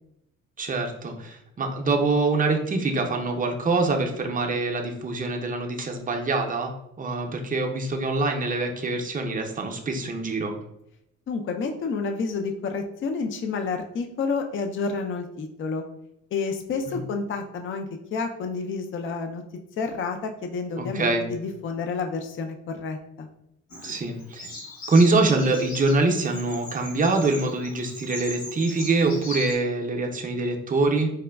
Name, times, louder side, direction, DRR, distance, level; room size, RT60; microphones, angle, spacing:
voice 1, 0.6-6.7 7.0-10.5 16.9-17.0 20.8-21.2 23.8-24.5 24.9-31.1, right 3 dB, 25° right, 3 dB, 0.5 m, -24 dB
voice 2, 11.3-15.8 16.3-19.4 19.8-23.3, left 4 dB, 45° left, 5 dB, 0.4 m, -30 dB
Bird vocalization bird call bird song, 23.7-29.5, left 2 dB, 65° left, 1.5 m, -39 dB
4.8 x 2.2 x 2.2 m, 0.81 s
cardioid pair, 90°, 30 cm